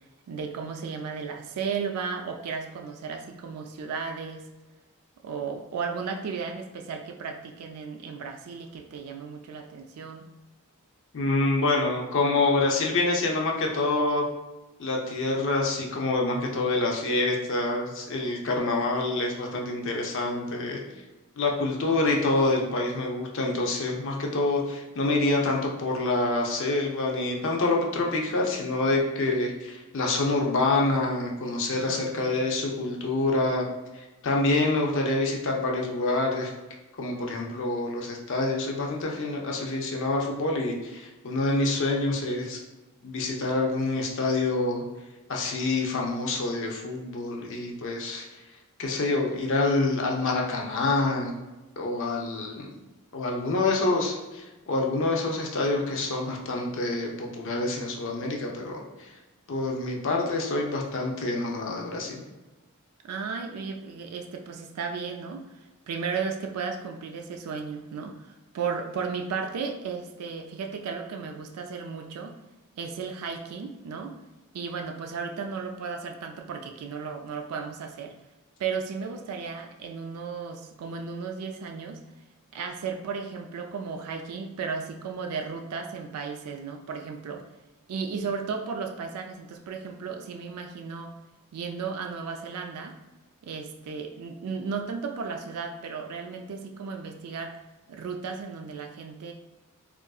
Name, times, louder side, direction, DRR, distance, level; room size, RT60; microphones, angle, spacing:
voice 1, 0.3-4.4 5.2-10.3 31.7-32.3 63.0-65.4 65.9-72.4 72.7-74.1 74.5-78.1 78.6-82.0 82.5-87.4 87.9-91.1 91.5-92.9 93.4-97.5 97.9-99.3, right 5 dB, 85° right, 4 dB, 0.4 m, -34 dB
voice 2, 11.1-14.2 14.8-20.8 21.4-33.6 34.2-36.5 37.0-42.6 43.0-44.8 45.3-48.2 48.8-51.3 51.8-52.7 53.1-59.1 59.5-62.2, left 2 dB, 60° left, 0 dB, 0.6 m, -26 dB
3.7 x 2.4 x 2.3 m, 1.1 s
head